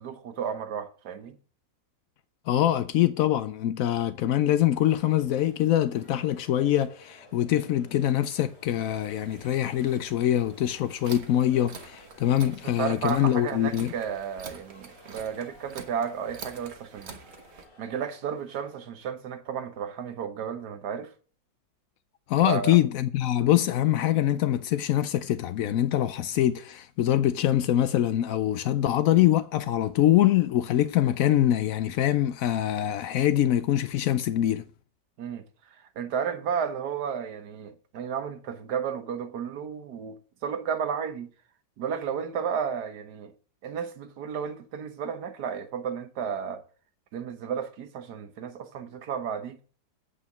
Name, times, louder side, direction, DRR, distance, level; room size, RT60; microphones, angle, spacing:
voice 1, 0.0-1.3 12.6-17.2 17.8-21.1 22.4-22.8 35.2-35.4 36.0-41.3 41.8-43.3 43.6-46.6 47.1-49.6, right 7 dB, 65° right, 1.5 m, -33 dB
voice 2, 2.5-13.9 22.3-34.6, left 12 dB, 85° left, 0.7 m, -24 dB
sound 1, 4.6-18.8, left 1 dB, 60° left, 5.1 m, -55 dB
sound 2, 8.7-17.7, right 5 dB, 40° right, 1.2 m, -47 dB
8.4 x 5.0 x 7.0 m
omnidirectional pair, 2.0 m